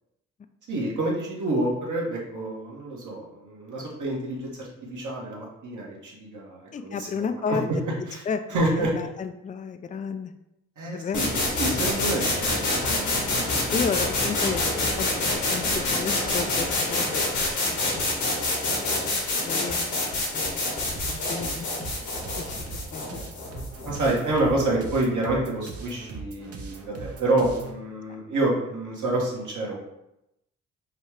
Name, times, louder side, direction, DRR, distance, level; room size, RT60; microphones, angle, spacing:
voice 1, 0.7-7.6 8.1-8.2 8.5-8.9 10.8-13.7 23.8-29.8, right 2 dB, 60° right, -3 dB, 1.6 m, -28 dB
voice 2, 6.7-7.7 8.3-10.3 10.9-11.3 13.3-17.8 18.1-19.0 19.4-20.1 20.3-20.6 20.9-21.9 22.4-23.3, left 6 dB, 25° left, 8 dB, 0.4 m, -33 dB
sound 1, 11.1-24.9, left 2 dB, 80° left, 1.5 m, -27 dB
sound 2, 21.0-27.8, right 4 dB, 45° right, 0.8 m, -40 dB
5.6 x 2.3 x 3.3 m, 0.87 s
hypercardioid pair, 40°, 34 cm